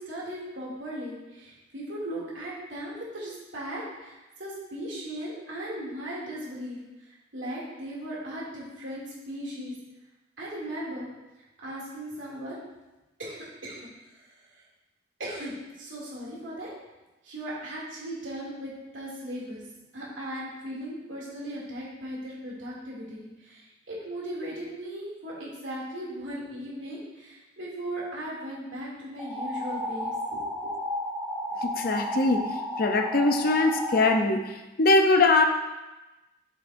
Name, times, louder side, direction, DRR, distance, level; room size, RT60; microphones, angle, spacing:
voice 1, 0.0-9.7 10.4-11.1 11.6-12.6 13.2-13.8 14.1-14.6 15.2-16.7 17.2-19.6 19.9-30.7, right 1 dB, 80° right, -6 dB, 2.6 m, -37 dB
sound 1, 29.2-34.2, left 1 dB, 10° right, 1.0 m, -33 dB
voice 2, 31.6-32.5 32.8-35.4, left 2 dB, 50° left, 4 dB, 0.6 m, -22 dB
7.6 x 7.4 x 2.6 m, 1.1 s
head